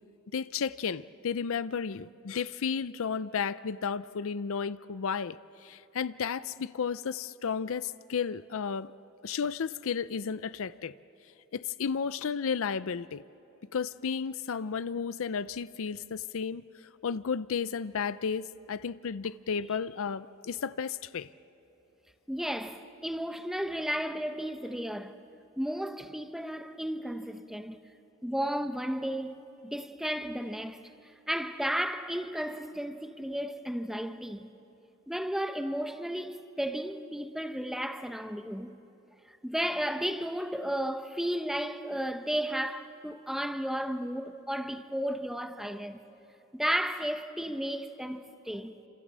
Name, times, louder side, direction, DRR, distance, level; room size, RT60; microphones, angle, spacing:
voice 1, 0.3-5.4 5.6-8.9 9.2-10.9 11.5-13.2 13.7-16.6 17.0-21.3, left 6 dB, 65° left, 0.5 m, -33 dB
voice 2, 22.3-25.2 25.6-27.8 28.2-30.8 31.3-34.5 35.1-38.8 39.3-46.0 46.5-48.8, equal, ahead, 0.9 m, -33 dB
27.5 x 27.0 x 7.5 m
head